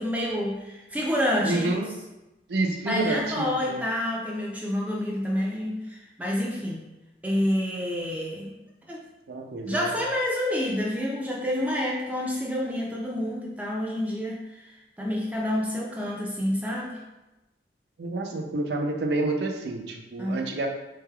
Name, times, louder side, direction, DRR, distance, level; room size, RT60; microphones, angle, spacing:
voice 1, 0.0-1.8 2.9-6.8 7.2-8.5 8.9-9.0 9.6-17.0 20.2-20.5, left 1 dB, 10° right, -3 dB, 0.3 m, -28 dB
voice 2, 1.4-2.0 2.5-3.8 9.3-9.9 18.0-20.7, right 2 dB, 70° right, 3 dB, 0.5 m, -29 dB
3.8 x 3.3 x 2.3 m, 1.0 s
head